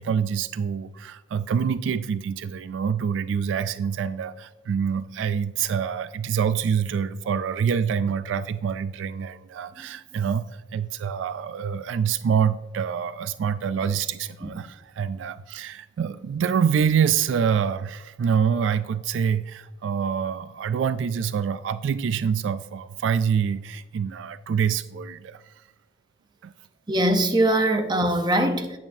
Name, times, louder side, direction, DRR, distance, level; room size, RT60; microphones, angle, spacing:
voice 1, 0.0-25.5 26.4-26.5, right 7 dB, 70° right, 0.3 m, -26 dB
voice 2, 26.9-28.8, right 1 dB, 25° right, 0.7 m, -22 dB
9.2 x 8.8 x 2.7 m
head